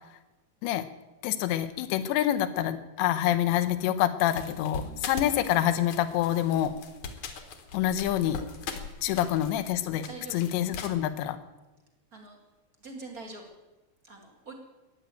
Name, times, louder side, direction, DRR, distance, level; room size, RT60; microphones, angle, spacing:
voice 1, 1.2-6.7 7.7-8.4 9.0-11.4, left 12 dB, 85° left, 10 dB, 3.2 m, -27 dB
sound 1, 4.2-10.9, left 5 dB, 60° left, 2.3 m, -41 dB
voice 2, 4.8-5.1 9.1-9.2 10.0-10.4 12.1-12.4 12.8-13.5 14.0-14.5, right 3 dB, 30° right, 2 dB, 1.7 m, -44 dB
14.5 x 10.5 x 9.1 m, 1.1 s
omnidirectional pair, 5.0 m